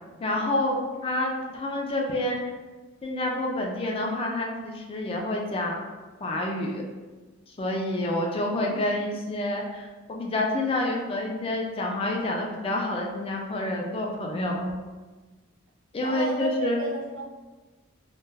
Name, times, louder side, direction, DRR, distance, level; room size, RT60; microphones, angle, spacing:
voice 1, 0.2-2.5 3.0-5.8 6.2-6.8 7.5-14.7 15.9-16.8, left 1 dB, 30° left, 0 dB, 0.4 m, -28 dB
voice 2, 8.7-9.0 16.0-17.2, right 4 dB, 80° right, -1 dB, 0.5 m, -34 dB
2.3 x 2.1 x 3.2 m, 1.3 s
head